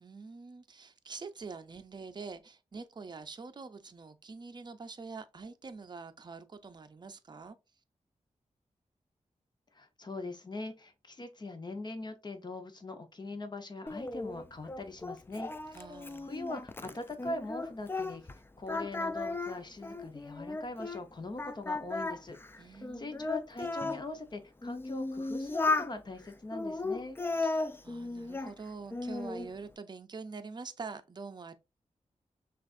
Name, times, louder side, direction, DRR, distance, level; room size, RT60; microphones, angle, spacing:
voice 1, 0.0-7.6 15.7-16.3 22.6-23.3 27.4-31.5, right 4 dB, 40° right, 0.5 m, -45 dB
voice 2, 9.7-15.9 16.2-18.3 18.6-27.2, left 2 dB, 35° left, 0.8 m, -42 dB
Singing, 13.9-18.4 18.7-21.0 21.4-24.0 24.6-25.9 26.5-28.5 28.9-29.5, left 3 dB, 20° left, 0.4 m, -35 dB
5.9 x 2.5 x 2.5 m
wide cardioid pair, 90°, 12 cm